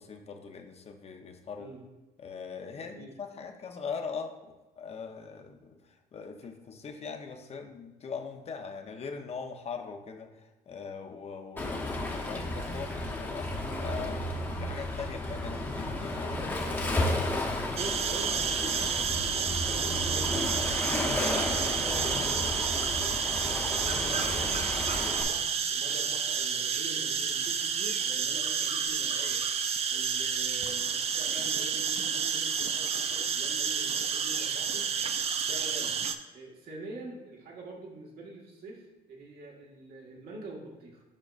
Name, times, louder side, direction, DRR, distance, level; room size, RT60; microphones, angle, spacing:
voice 1, 0.0-1.7 2.2-4.3 4.8-5.8 6.1-16.4, left 5 dB, 40° left, 5 dB, 0.7 m, -41 dB
Waves surf, 11.6-25.2, left 1 dB, 10° left, 1.0 m, -33 dB
voice 2, 17.7-20.8 21.3-24.7 25.0-34.9 35.4-36.0 36.3-41.0, right 2 dB, 65° right, -2 dB, 1.6 m, -45 dB
sound 1, 17.8-36.1, right 7 dB, 40° right, 0.4 m, -30 dB
7.4 x 5.1 x 2.5 m, 1.1 s
cardioid pair, 110°, 17 cm